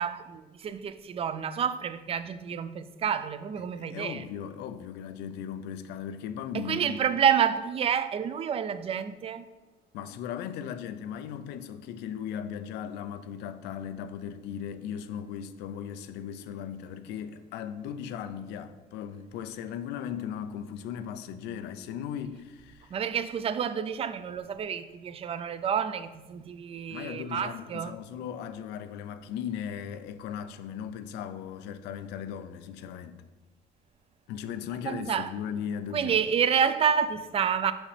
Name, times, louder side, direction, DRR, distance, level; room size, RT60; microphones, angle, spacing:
voice 1, 0.0-4.3 6.5-9.5 22.9-27.9 34.8-35.3 35.9-37.7, right 8 dB, 35° right, 0.4 m, -29 dB
voice 2, 3.6-7.1 9.9-23.0 26.9-33.2 34.3-36.2, left 8 dB, 90° left, 0.4 m, -37 dB
6.1 x 5.1 x 3.3 m
cardioid pair, 110°, 17 cm